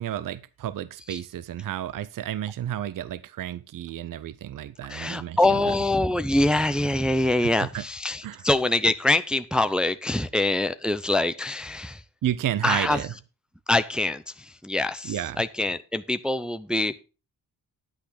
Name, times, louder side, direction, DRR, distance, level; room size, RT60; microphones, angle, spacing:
voice 1, 0.0-5.6 7.6-7.8 8.2-8.4 12.2-13.1 15.0-15.4, right 11 dB, 50° right, 0.6 m, -31 dB
voice 2, 4.9-12.0 12.6-13.0 13.7-16.9, left 2 dB, ahead, 0.5 m, -24 dB
10.5 x 8.6 x 3.9 m
wide cardioid pair, 135°, 41 cm